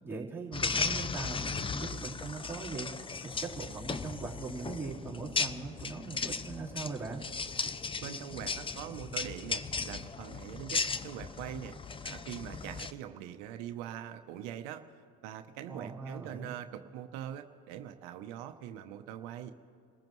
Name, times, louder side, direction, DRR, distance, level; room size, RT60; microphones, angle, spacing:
voice 1, 0.0-7.2 15.7-16.6, right 4 dB, 5° right, -8 dB, 3.7 m, -40 dB
sound 1, 0.5-12.9, left 4 dB, 15° left, 0.4 m, -36 dB
voice 2, 8.0-11.8 12.0-14.8 15.2-19.5, right 10 dB, 90° right, 7 dB, 0.8 m, -43 dB
27.5 x 14.5 x 3.1 m, 2.4 s
supercardioid pair, 95°, 35 cm